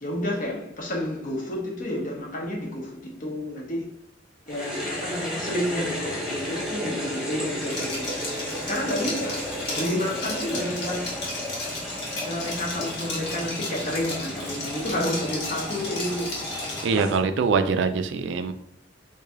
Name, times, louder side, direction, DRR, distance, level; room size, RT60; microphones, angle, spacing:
voice 1, 0.0-3.9 4.5-8.2 8.6-9.4 9.7-11.3 12.2-16.4, left 1 dB, 45° left, 0.9 m, -30 dB
sound 1, 4.5-17.2, equal, 5° right, 1.0 m, -33 dB
Liquid, 7.6-17.0, left 2 dB, 65° left, 1.2 m, -34 dB
voice 2, 16.8-18.5, right 5 dB, 70° right, 0.3 m, -23 dB
3.2 x 2.6 x 3.6 m
head